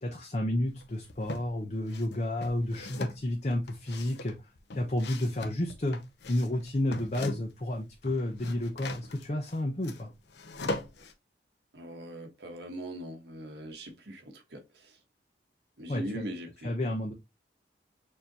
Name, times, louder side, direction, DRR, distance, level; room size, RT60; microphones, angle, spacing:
voice 1, 0.0-4.4 4.7-6.0 6.3-10.1 15.9-16.2 16.6-17.1, left 1 dB, 40° left, 0.7 m, -31 dB
sound 1, 0.8-1.5 1.9-7.7 7.9-11.1, left 2 dB, 75° left, 0.7 m, -40 dB
voice 2, 11.7-15.0 15.8-16.8, right 1 dB, 75° right, 1.3 m, -41 dB
6.6 x 2.8 x 2.8 m
head